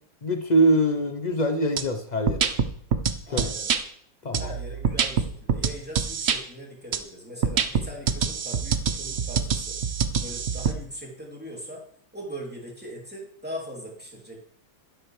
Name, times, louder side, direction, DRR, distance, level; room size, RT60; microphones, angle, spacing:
voice 1, 0.2-2.5 3.3-3.5 4.2-4.5, right 1 dB, 90° left, 5 dB, 0.3 m, -23 dB
sound 1, 1.8-1.9 2.3-3.8 4.3-6.4 6.9-7.0 7.4-10.7, right 6 dB, 65° right, 0.6 m, -25 dB
voice 2, 3.3-3.8 4.4-9.8 10.2-11.8 12.1-14.5, equal, 5° right, -3 dB, 2.9 m, -40 dB
12.0 x 11.5 x 3.3 m, 0.64 s
omnidirectional pair, 2.1 m